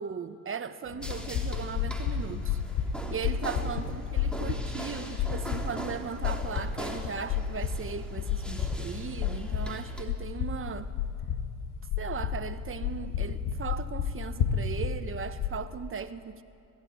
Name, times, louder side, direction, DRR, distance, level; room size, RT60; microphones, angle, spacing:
voice 1, 0.0-2.6 3.1-10.9 12.0-16.4, right 6 dB, 30° right, 1.2 m, -37 dB
sound 1, 0.9-15.5, left 7 dB, 70° left, 2.0 m, -32 dB
sound 2, 1.0-10.0, equal, ahead, 3.1 m, -42 dB
18.5 x 15.5 x 9.7 m
supercardioid pair, 85°, 41 cm